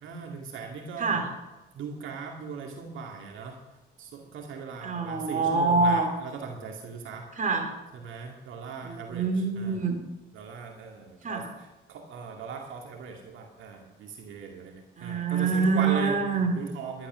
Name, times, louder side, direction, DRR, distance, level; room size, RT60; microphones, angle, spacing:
voice 1, 0.0-1.2 1.7-3.6 4.0-7.3 8.0-9.3 9.6-9.8 10.3-11.4 11.9-16.2 16.6-17.1, right 5 dB, 80° right, 2 dB, 2.2 m, -38 dB
voice 2, 1.0-1.3 4.8-6.1 7.3-7.7 8.8-10.0 11.2-11.5 15.0-16.5, right 4 dB, 40° right, 4 dB, 3.1 m, -26 dB
12.0 x 11.5 x 6.3 m, 1.1 s
cardioid pair, 90°, 20 cm